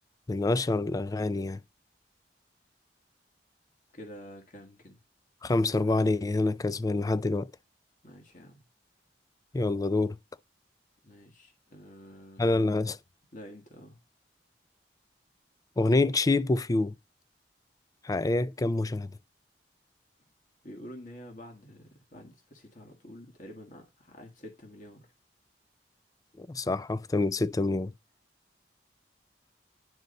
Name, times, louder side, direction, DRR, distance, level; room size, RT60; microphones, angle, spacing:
voice 1, 0.3-1.6 5.4-7.5 9.5-10.2 12.4-13.0 15.8-16.9 18.0-19.1 26.4-27.9, left 2 dB, 20° left, 0.4 m, -26 dB
voice 2, 3.9-5.0 8.0-8.7 11.0-12.5 13.3-14.0 20.6-25.1, equal, 50° left, 1.7 m, -48 dB
10.5 x 4.0 x 5.3 m
head